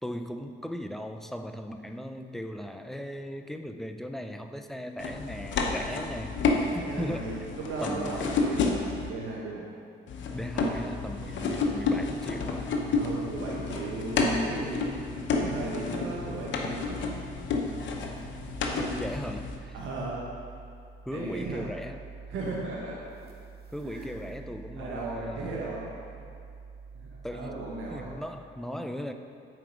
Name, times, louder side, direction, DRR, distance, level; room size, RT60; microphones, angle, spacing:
voice 1, 0.0-6.3 6.7-7.5 7.8-8.3 10.3-12.7 18.8-19.8 21.0-22.0 23.7-25.7 27.2-27.6 27.9-29.1, equal, ahead, 6 dB, 0.4 m, -37 dB
sound 1, 5.0-9.1 10.1-19.6, left 3 dB, 70° left, 0.8 m, -30 dB
voice 2, 6.7-9.7 13.0-17.3 19.7-20.3 21.1-21.7 22.3-23.1 23.8-24.1 24.5-26.2 26.9-28.2, right 3 dB, 85° right, -4 dB, 1.0 m, -37 dB
sound 2, 10.5-28.2, right 5 dB, 50° right, 0.9 m, -48 dB
7.7 x 4.5 x 5.1 m, 2.3 s
cardioid pair, 90°, 20 cm